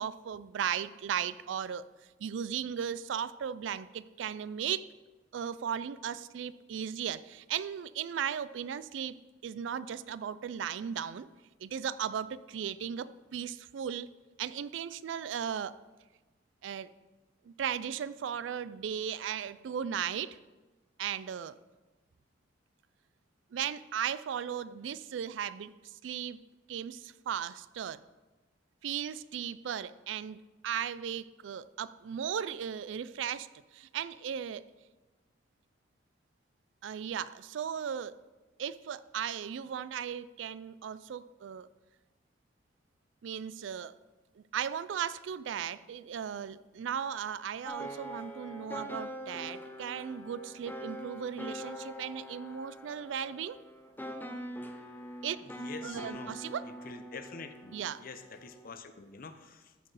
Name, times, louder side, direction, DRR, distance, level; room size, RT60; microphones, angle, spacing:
voice 1, 0.0-1.9 2.2-4.9 5.3-9.2 9.4-11.3 11.6-14.1 14.4-15.8 16.6-16.9 17.4-20.4 21.0-21.6 23.5-26.4 26.7-28.0 28.8-34.6 36.8-38.1 38.6-41.7 43.2-43.9 44.4-53.6 55.2-55.4 55.8-56.6 57.7-58.0, right 8 dB, 75° right, 17 dB, 0.3 m, -36 dB
sound 1, 47.7-58.8, equal, 10° left, 0.7 m, -44 dB
voice 2, 55.4-56.4 56.6-59.9, left 4 dB, 50° left, 10 dB, 0.6 m, -47 dB
13.5 x 4.7 x 4.8 m, 1.2 s
head